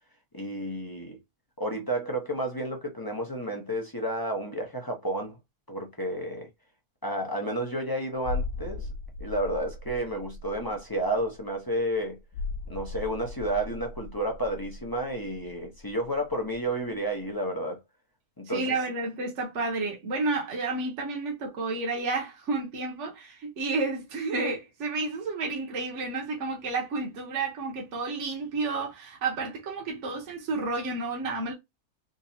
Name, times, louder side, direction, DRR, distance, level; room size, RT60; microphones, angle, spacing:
voice 1, 0.3-1.2 1.6-5.3 5.7-6.5 7.0-8.9 9.2-12.2 12.7-17.8 18.4-18.6, right 1 dB, 30° left, 0.4 m, -31 dB
sound 1, 8.2-16.6 16.9-17.1, left 3 dB, 85° left, 1.1 m, -38 dB
voice 2, 18.5-31.5, right 3 dB, 50° right, 1.3 m, -31 dB
3.8 x 2.9 x 2.7 m
omnidirectional pair, 1.6 m